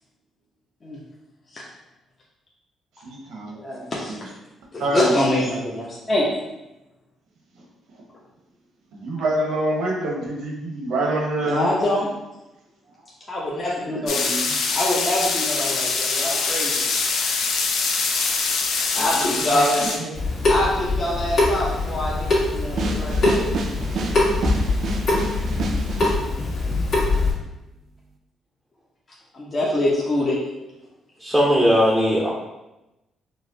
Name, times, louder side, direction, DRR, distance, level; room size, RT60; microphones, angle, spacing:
voice 1, 3.0-4.2 4.8-5.1 7.5-7.6 8.9-11.7 13.0-13.1 13.9-14.5 18.1-18.2 18.9-20.2, right 2 dB, 85° right, -1 dB, 0.9 m, -27 dB
voice 2, 3.6-4.2 4.7-6.3 11.4-12.1 13.3-14.3 14.7-16.7 18.9-19.9 20.5-23.5 29.3-30.4, left 1 dB, 35° left, -5 dB, 0.7 m, -24 dB
sound 1, 14.1-20.0, left 4 dB, 75° left, 0.4 m, -24 dB
Water tap faucet / Sink (filling or washing) / Drip, 20.1-27.3, left 2 dB, 55° left, 1.3 m, -23 dB
sound 2, 22.8-26.2, right 3 dB, 65° right, 0.4 m, -28 dB
voice 3, 31.2-32.3, equal, 5° right, -3 dB, 0.5 m, -18 dB
4.8 x 2.0 x 2.7 m, 0.98 s
cardioid pair, 90°, 0 cm